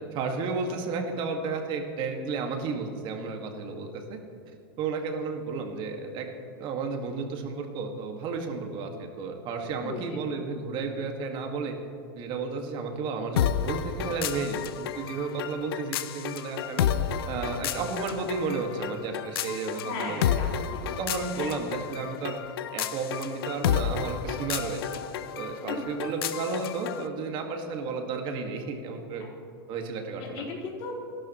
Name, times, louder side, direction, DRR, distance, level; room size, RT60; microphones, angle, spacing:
voice 1, 0.1-4.2 4.8-6.3 6.6-11.7 12.2-16.9 17.3-20.3 21.0-22.4 22.7-24.8 25.3-29.3 29.7-30.4, right 4 dB, 40° right, 3 dB, 1.9 m, -32 dB
voice 2, 9.8-10.3 19.8-20.8 21.3-21.5 25.7-25.9 30.2-30.9, left 3 dB, 50° left, -4 dB, 4.4 m, -37 dB
sound 1, 13.4-27.1, left 9 dB, 75° left, 0.8 m, -31 dB
28.0 x 12.0 x 3.1 m, 2.7 s
supercardioid pair, 135°, 13 cm